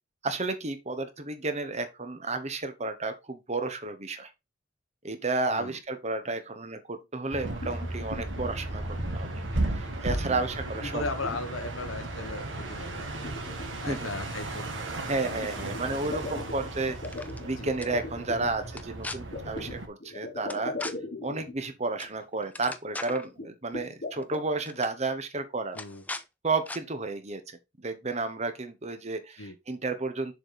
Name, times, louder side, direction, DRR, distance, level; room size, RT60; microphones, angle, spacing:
voice 1, 0.2-4.3 5.0-8.8 9.1-9.4 9.7-11.0 13.9-14.1 15.1-17.0 17.4-20.7 21.2-25.8 26.4-27.4 27.8-30.3, right 3 dB, 35° right, 1.2 m, -32 dB
sound 1, 7.2-8.4 8.9-9.3 9.7-10.2 10.5-12.1 12.5-12.6 13.0-14.3 15.4-18.5 19.3-21.7 22.0-22.1 22.4-22.5 23.1-24.5, left 2 dB, 50° left, 1.4 m, -40 dB
sound 2, 7.3-19.9, right 2 dB, 70° right, 2.0 m, -35 dB
voice 2, 10.8-13.3 13.8-14.8 15.2-16.3 17.5-17.7 25.7-26.0 29.4-29.6, left 3 dB, 80° left, 1.2 m, -38 dB
sound 3, 16.9-17.4 17.8-17.9 18.7-19.2 20.5-20.9 22.0-22.2 22.4-23.3 24.2-24.4 24.6-24.9 25.7-26.2 26.7-26.8, left 2 dB, 10° left, 0.5 m, -38 dB
7.0 x 5.1 x 4.0 m
head